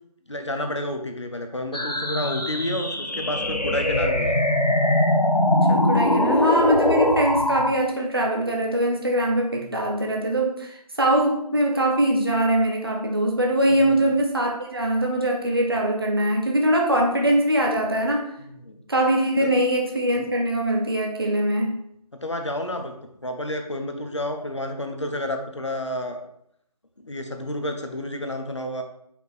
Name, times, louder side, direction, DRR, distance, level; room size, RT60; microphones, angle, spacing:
voice 1, 0.3-4.4 6.0-6.2 9.5-10.0 13.7-14.1 18.4-18.8 22.2-22.9 23.2-26.2 27.0-28.8, left 1 dB, 45° left, 5 dB, 0.9 m, -30 dB
sound 1, 1.7-7.7, left 1 dB, 80° left, 1.1 m, -22 dB
voice 2, 5.7-18.3 18.9-21.8, right 1 dB, 35° right, 1 dB, 0.8 m, -22 dB
5.2 x 4.6 x 4.6 m, 0.73 s
figure-of-eight pair, 170°, 20 cm